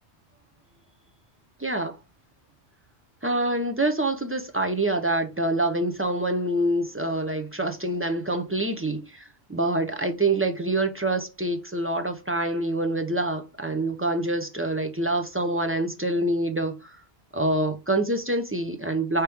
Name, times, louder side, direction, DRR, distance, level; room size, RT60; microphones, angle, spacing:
voice 1, 1.6-2.0 3.2-9.2 9.5-17.0 17.3-19.2, right 1 dB, 20° right, 0.4 m, -26 dB
5.0 x 2.9 x 3.4 m
omnidirectional pair, 1.2 m